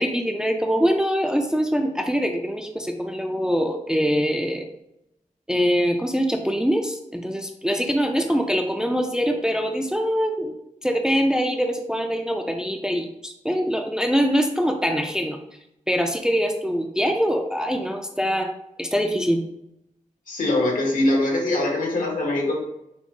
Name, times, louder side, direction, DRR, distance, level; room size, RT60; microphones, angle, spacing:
voice 1, 0.0-4.7 5.5-10.5 10.8-15.4 15.9-18.5 18.8-19.4, equal, 5° right, 4 dB, 0.4 m, -23 dB
voice 2, 20.3-22.6, left 1 dB, 80° left, -1 dB, 1.4 m, -22 dB
6.0 x 2.1 x 3.7 m, 0.82 s
wide cardioid pair, 140°, 14 cm